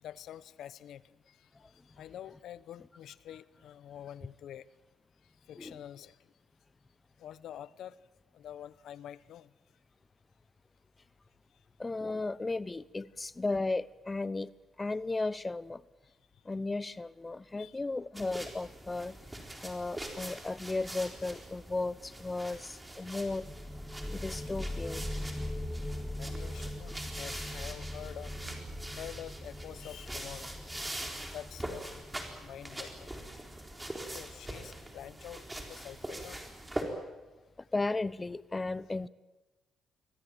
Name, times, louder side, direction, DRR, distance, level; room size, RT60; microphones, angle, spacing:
voice 1, 0.0-4.7 5.5-6.2 7.2-8.0 8.3-9.5 17.6-17.8 26.2-28.3 29.0-30.8 31.3-31.9 32.4-33.2 34.1-36.4, left 11 dB, 75° left, 18 dB, 0.8 m, -47 dB
voice 2, 11.8-14.5 14.8-15.8 16.5-19.1 19.6-23.4 24.1-25.0 37.7-39.1, left 3 dB, 20° left, 19 dB, 0.7 m, -35 dB
sound 1, 18.1-36.8, right 1 dB, 10° right, 4.1 m, -43 dB
sound 2, 23.3-34.7, left 1 dB, 5° left, 2.2 m, -41 dB
sound 3, 28.3-30.8, right 6 dB, 80° right, 3.6 m, -54 dB
24.5 x 17.0 x 9.0 m, 1.1 s
cardioid pair, 90°, 0 cm